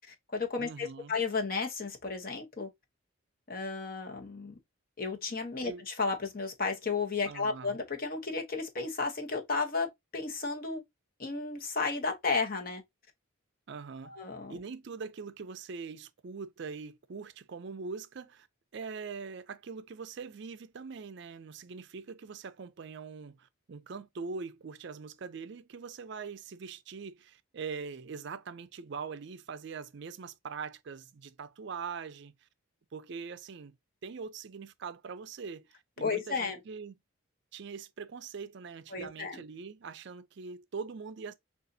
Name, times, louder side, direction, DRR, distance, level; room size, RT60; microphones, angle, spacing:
voice 1, 0.1-2.7 3.5-4.5 5.0-10.8 11.2-12.8 14.1-14.6 36.0-36.6 38.9-39.4, left 4 dB, 45° left, 0.9 m, -33 dB
voice 2, 0.6-1.2 5.6-5.8 7.3-7.8 13.7-14.2 14.5-18.5 18.7-32.5 32.9-33.8 34.0-37.0 37.5-41.3, right 5 dB, 55° right, 0.4 m, -42 dB
6.7 x 2.4 x 2.7 m
head